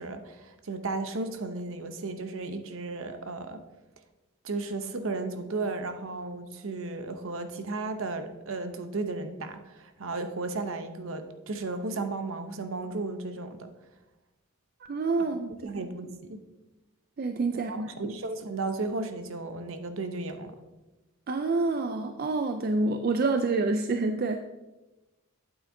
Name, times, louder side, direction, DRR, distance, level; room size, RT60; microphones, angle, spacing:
voice 1, 0.0-3.6 4.4-13.7 15.2-15.3 15.6-16.4 17.7-20.5, right 3 dB, 65° right, 8 dB, 0.7 m, -34 dB
voice 2, 14.9-15.5 17.2-18.1 21.3-24.4, right 3 dB, 45° right, 7 dB, 0.3 m, -27 dB
8.9 x 8.6 x 2.7 m, 1.1 s
head